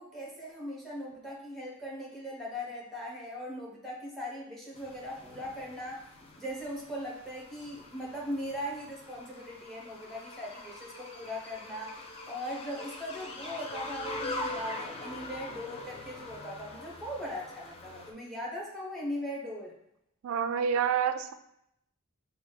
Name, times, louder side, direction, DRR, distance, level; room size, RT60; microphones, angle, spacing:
voice 1, 0.0-6.1 6.4-12.0 12.3-19.7, equal, ahead, -3 dB, 1.0 m, -39 dB
sound 1, 4.8-18.1, left 2 dB, 30° left, 0.5 m, -43 dB
voice 2, 20.2-21.3, right 7 dB, 85° right, 10 dB, 0.3 m, -28 dB
6.0 x 2.3 x 3.4 m, 0.77 s
head